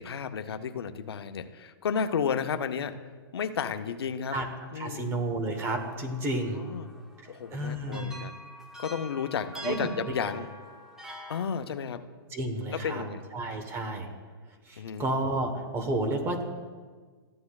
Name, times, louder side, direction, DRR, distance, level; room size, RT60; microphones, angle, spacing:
voice 1, 0.0-3.0 3.3-4.4 4.7-5.1 6.6-7.0 7.3-8.4 8.8-10.5 11.3-12.1 12.7-13.2 14.8-15.1, left 7 dB, 90° left, 9 dB, 0.6 m, -32 dB
voice 2, 4.8-6.6 7.5-8.1 9.6-9.9 12.3-13.0 13.3-14.1 14.7-16.4, right 1 dB, 20° right, 5 dB, 1.1 m, -31 dB
sound 1, 5.6-11.5, equal, 5° right, 0.7 m, -46 dB
14.0 x 9.5 x 2.3 m, 1.5 s
hypercardioid pair, 150°, 13 cm